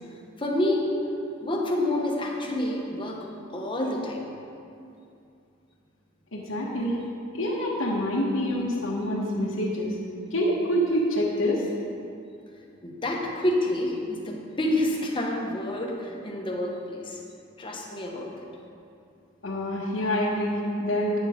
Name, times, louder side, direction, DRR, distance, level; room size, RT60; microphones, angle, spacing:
voice 1, 0.4-0.9 1.4-4.2 12.8-17.2 17.6-18.5, left 1 dB, 25° left, -1 dB, 1.2 m, -28 dB
voice 2, 6.3-7.0 7.3-10.0 10.3-11.7 19.4-21.2, equal, 80° left, -5 dB, 1.3 m, -26 dB
9.1 x 7.4 x 5.1 m, 2.6 s
head